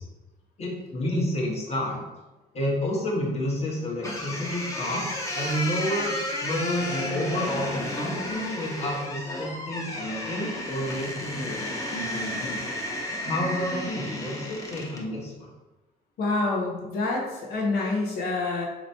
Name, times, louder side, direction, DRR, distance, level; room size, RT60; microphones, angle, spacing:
voice 1, 0.6-2.0 2.5-12.7 13.2-15.5, left 1 dB, 40° left, -2 dB, 1.2 m, -30 dB
sound 1, 4.0-15.1, left 1 dB, 20° left, 0.8 m, -33 dB
voice 2, 16.2-18.6, left 3 dB, 70° left, -1 dB, 0.9 m, -27 dB
4.4 x 2.9 x 2.7 m, 1.1 s
cardioid pair, 110°, 17 cm